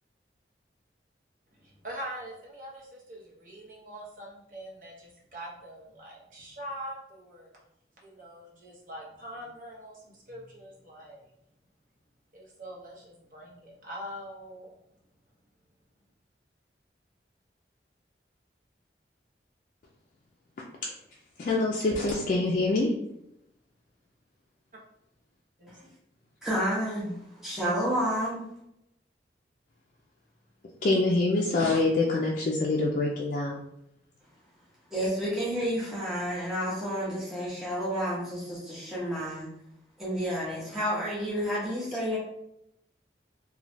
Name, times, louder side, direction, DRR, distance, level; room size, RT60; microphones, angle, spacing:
voice 1, 1.5-7.5 8.0-11.3 12.3-14.7 25.6-25.7, equal, 45° right, -3 dB, 0.8 m, -43 dB
voice 2, 21.4-22.9 30.8-33.6, left 2 dB, 45° left, -3 dB, 0.3 m, -25 dB
voice 3, 26.4-28.4 34.9-39.5 40.0-42.2, equal, 5° right, -8 dB, 0.7 m, -30 dB
3.1 x 2.2 x 2.6 m, 0.81 s
head